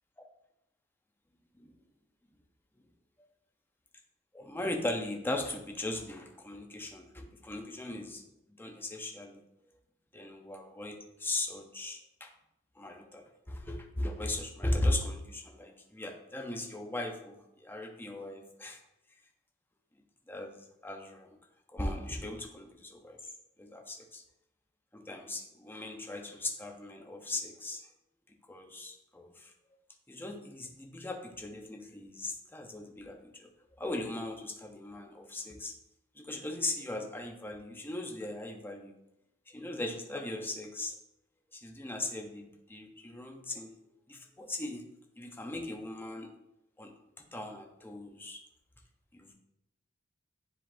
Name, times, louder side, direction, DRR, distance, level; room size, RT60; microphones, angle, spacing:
voice 1, 4.3-8.2 8.6-9.4 10.1-12.3 12.8-18.8 20.3-21.4 21.7-23.2 23.6-24.2 24.9-27.8 28.5-29.5 30.1-33.5 33.8-35.7 36.2-38.9 39.5-40.9 41.5-43.7 44.1-44.8 45.2-46.3 46.8-46.9 47.3-48.4 49.1-49.3, left 1 dB, 10° left, 2 dB, 0.7 m, -38 dB
10.0 x 3.8 x 2.6 m, 0.84 s
head